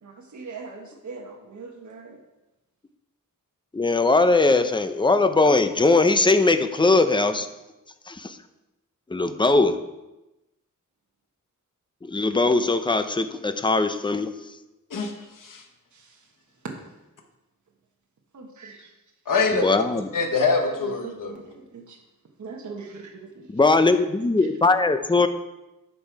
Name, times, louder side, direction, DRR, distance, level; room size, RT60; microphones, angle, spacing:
voice 1, 0.0-2.2 15.9-16.3 18.3-19.0 20.6-20.8 21.0-22.0 22.4-23.5 23.9-24.0, right 4 dB, 60° right, 0 dB, 1.3 m, -41 dB
voice 2, 3.7-7.5 8.1-8.4 9.1-9.8 12.0-14.3 19.5-20.1 23.5-25.3, left 3 dB, 15° left, 9 dB, 0.5 m, -20 dB
voice 3, 14.9-15.6 19.3-19.6 20.1-21.3, left 4 dB, 75° left, 4 dB, 1.2 m, -24 dB
10.5 x 5.6 x 4.6 m, 0.99 s
wide cardioid pair, 135°, 32 cm